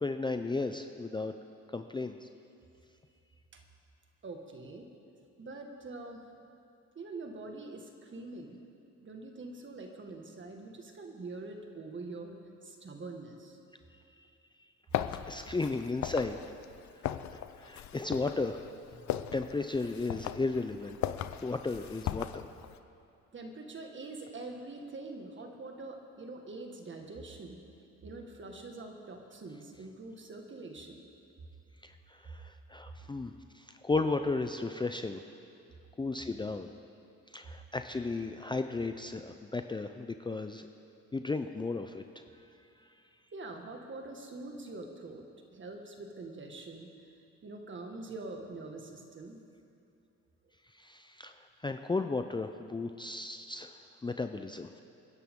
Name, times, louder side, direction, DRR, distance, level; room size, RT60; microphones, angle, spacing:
voice 1, 0.0-1.3 1.7-2.3 15.3-16.4 17.3-18.6 19.3-21.0 21.4-22.5 31.8-35.2 36.0-36.7 37.3-40.7 41.1-42.0 50.8-51.3 51.6-53.7 54.0-54.7, left 3 dB, 15° left, 7 dB, 0.5 m, -34 dB
voice 2, 4.2-4.9 5.4-6.2 7.0-8.6 9.0-12.4 12.6-13.6 23.3-27.6 28.0-31.1 43.3-45.3 45.5-46.9 47.4-49.4, right 3 dB, 40° right, 3 dB, 1.9 m, -44 dB
sound 1, 14.9-22.8, left 11 dB, 70° left, 0.6 m, -38 dB
27.5 x 10.5 x 3.8 m, 2.6 s
cardioid pair, 90°, 30 cm